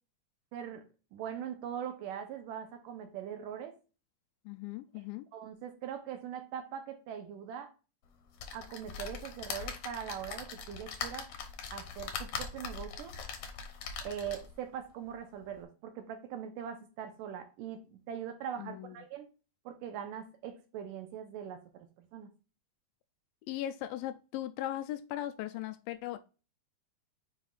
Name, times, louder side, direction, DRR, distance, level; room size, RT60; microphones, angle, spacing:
voice 1, 0.5-0.8 1.1-3.7 5.3-7.7 8.5-11.3 11.7-13.1 14.0-19.3 19.7-22.3, right 9 dB, 75° right, 2.2 m, -41 dB
voice 2, 4.5-5.3 18.6-19.0 23.5-26.2, left 13 dB, 80° left, 2.1 m, -38 dB
sound 1, 8.4-14.6 15.1-15.2 15.5-15.6, left 6 dB, 65° left, 2.1 m, -41 dB
7.9 x 5.2 x 2.4 m
omnidirectional pair, 4.3 m